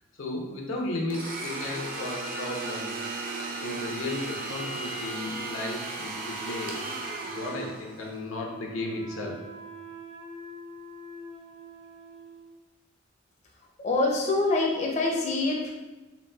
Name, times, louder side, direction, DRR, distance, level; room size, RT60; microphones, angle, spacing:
voice 1, 0.2-3.0 3.6-6.8 7.3-9.4, left 2 dB, 90° left, -1 dB, 0.7 m, -34 dB
Domestic sounds home sounds, 1.1-8.2, right 3 dB, 45° right, 0.5 m, -35 dB
Wind instrument woodwind instrument, 6.6-12.5, right 2 dB, 80° right, 1.1 m, -44 dB
voice 2, 13.8-15.7, left 2 dB, 35° left, -2 dB, 0.5 m, -25 dB
4.0 x 3.0 x 2.2 m, 1.1 s
head